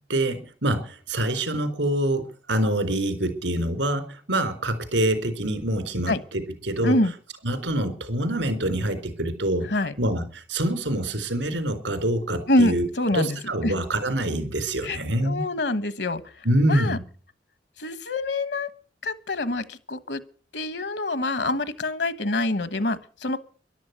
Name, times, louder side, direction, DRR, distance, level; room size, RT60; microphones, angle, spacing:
voice 1, 0.1-7.0 7.4-9.7 10.0-12.9 13.1-15.4 16.4-17.0, right 1 dB, 80° right, 9 dB, 4.0 m, -25 dB
voice 2, 6.8-7.1 9.7-9.9 12.5-13.4 13.6-13.7 14.8-17.0 17.8-18.7 19.0-20.2 20.5-23.4, left 2 dB, 65° left, 15 dB, 1.3 m, -26 dB
13.5 x 12.0 x 8.1 m, 0.43 s
head